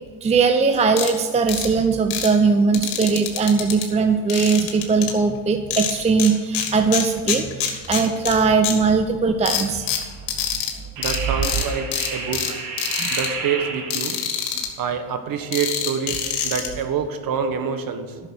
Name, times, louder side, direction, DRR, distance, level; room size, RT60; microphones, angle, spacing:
voice 1, 0.2-9.9 13.0-13.1, right 4 dB, 15° right, 7 dB, 0.6 m, -20 dB
sound 1, 1.0-1.1 1.5-1.7 2.1-2.3 2.7-3.8 4.3-5.1 5.7-6.3 6.5-8.3 8.6-8.7 9.5-10.7 11.0-11.2 11.4-11.6 11.9-12.5 12.8-13.3 13.9-14.7 15.5-16.7, left 9 dB, 80° left, 2.2 m, -25 dB
sound 2, 9.8-10.0 11.0-14.3, right 4 dB, 80° right, 3.4 m, -31 dB
voice 2, 11.0-12.6 13.1-14.2 14.8-18.2, right 6 dB, 45° right, 8 dB, 1.5 m, -26 dB
11.0 x 6.4 x 7.8 m, 1.5 s
supercardioid pair, 105°, 46 cm